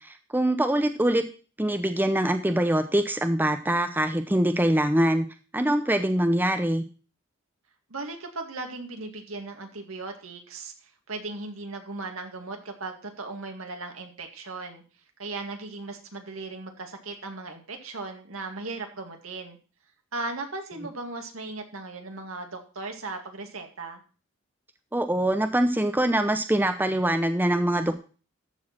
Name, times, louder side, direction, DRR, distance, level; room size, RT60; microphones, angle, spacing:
voice 1, 0.3-1.2 1.6-5.2 5.5-6.8 24.9-28.0, right 1 dB, 10° right, 7 dB, 0.7 m, -23 dB
voice 2, 7.9-14.8 15.2-19.6 20.1-24.0, right 3 dB, 80° right, 4 dB, 2.1 m, -37 dB
13.5 x 4.7 x 5.9 m, 0.36 s
head